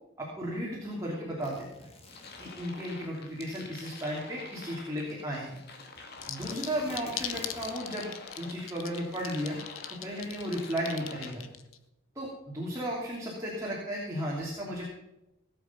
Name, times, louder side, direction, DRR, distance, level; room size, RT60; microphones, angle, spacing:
voice 1, 0.2-1.9 2.4-5.6 6.3-9.6 10.0-11.4 12.1-14.8, equal, 15° right, -5 dB, 2.9 m, -35 dB
sound 1, 1.4-2.8 6.0-8.0 8.6-8.7 8.9-9.0 10.0-10.4, left 2 dB, 25° left, 1.8 m, -49 dB
sound 2, 2.1-11.3, left 4 dB, 45° left, 2.0 m, -48 dB
sound 3, 6.2-11.8, left 11 dB, 70° left, 1.0 m, -39 dB
17.0 x 8.3 x 6.0 m, 0.92 s
head